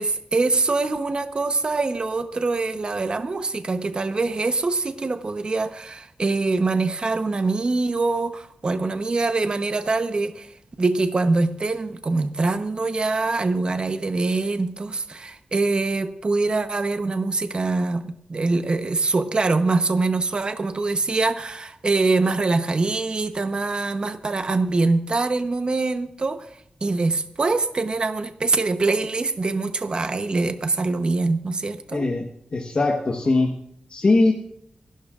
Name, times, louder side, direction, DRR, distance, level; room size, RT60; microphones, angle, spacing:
voice 1, 0.0-10.5 10.8-26.5 26.8-32.1, right 3 dB, 35° right, 0.9 m, -24 dB
voice 2, 31.9-32.2 32.5-33.5 33.9-34.3, left 3 dB, 40° left, 1.2 m, -20 dB
27.0 x 12.0 x 2.5 m
wide cardioid pair, 150°, 3 cm